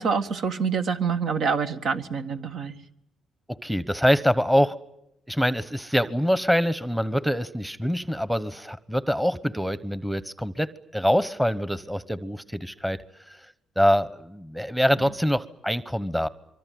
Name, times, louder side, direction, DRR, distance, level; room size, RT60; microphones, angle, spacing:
voice 1, 0.0-2.7, right 5 dB, 65° right, 7 dB, 1.8 m, -26 dB
voice 2, 3.5-4.8 5.3-13.0 13.3-13.4 13.8-16.3, equal, 5° right, 16 dB, 1.1 m, -24 dB
24.5 x 24.0 x 9.4 m, 0.83 s
cardioid pair, 90°, 0 cm